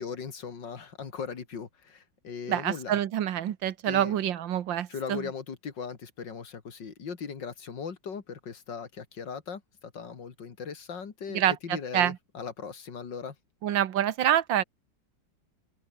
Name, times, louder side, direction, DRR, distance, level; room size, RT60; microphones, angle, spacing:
voice 1, 0.0-3.0 3.9-4.2 4.9-13.4, left 6 dB, 70° left, 3.0 m, -39 dB
voice 2, 2.5-5.2 11.3-12.2 13.6-14.6, right 10 dB, 80° right, 1.8 m, -27 dB
omnidirectional pair, 2.0 m